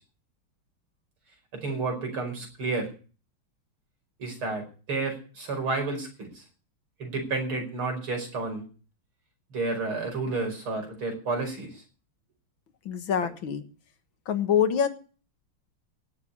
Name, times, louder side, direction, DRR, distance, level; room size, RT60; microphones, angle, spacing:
voice 1, 1.5-2.9 4.2-6.4 7.0-8.6 9.5-11.8, right 3 dB, 75° right, 3 dB, 6.0 m, -31 dB
voice 2, 12.9-13.6 14.3-14.9, left 8 dB, 65° left, 10 dB, 2.1 m, -25 dB
18.0 x 7.4 x 8.5 m, 0.38 s
omnidirectional pair, 2.3 m